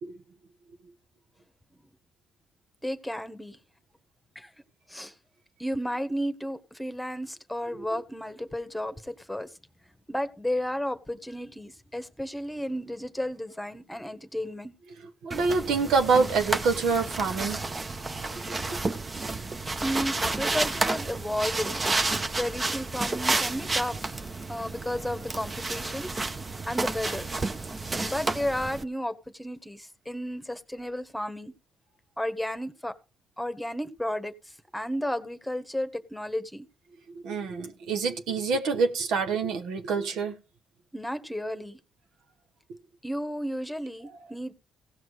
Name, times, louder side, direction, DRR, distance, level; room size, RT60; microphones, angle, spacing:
voice 1, 2.8-3.6 4.3-4.5 4.9-5.1 5.6-9.5 10.1-14.7 19.8-21.8 22.3-24.2 24.5-26.1 26.7-27.3 28.0-31.5 32.2-32.9 33.4-34.3 34.7-36.6 40.9-41.8 43.0-44.5, equal, 5° left, 1.3 m, -33 dB
voice 2, 15.2-17.6 18.4-18.8 37.2-40.4, right 4 dB, 85° right, 1.4 m, -26 dB
sound 1, 15.3-28.8, right 3 dB, 30° right, 0.9 m, -31 dB
16.0 x 6.0 x 4.9 m
cardioid pair, 90°, 0 cm